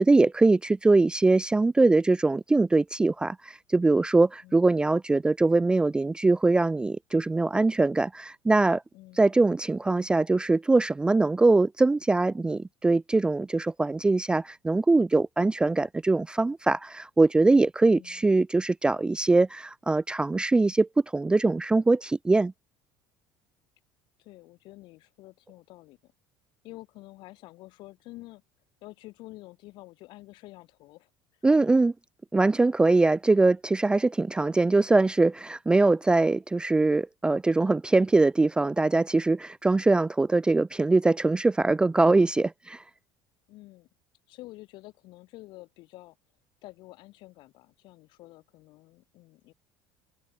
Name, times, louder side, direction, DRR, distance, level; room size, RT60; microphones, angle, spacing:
voice 1, 0.0-8.8 9.2-22.5 31.4-31.9 32.3-42.8, right 3 dB, 10° right, 0.3 m, -22 dB
voice 2, 4.4-4.7 8.9-9.3 17.9-18.3 24.2-26.1 26.6-28.4 28.8-31.1 43.5-43.9 44.3-46.2 46.6-49.5, left 19 dB, 65° left, 2.7 m, -48 dB
open air
cardioid pair, 130°, 9 cm